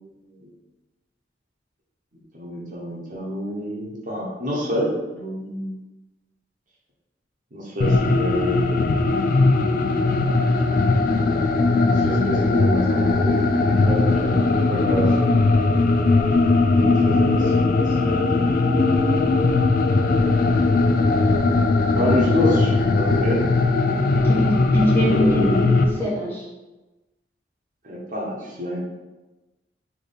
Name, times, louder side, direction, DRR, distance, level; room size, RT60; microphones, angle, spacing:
voice 1, 2.3-5.7 7.5-9.0 11.8-15.1 16.7-18.2 18.6-19.0 21.9-23.4 24.9-25.6 27.8-28.8, equal, 45° right, -4 dB, 1.0 m, -27 dB
sound 1, 7.8-25.9, left 3 dB, 50° left, 0.4 m, -19 dB
voice 2, 24.2-26.4, equal, 10° left, -8 dB, 1.2 m, -23 dB
3.4 x 3.1 x 4.0 m, 1.1 s
head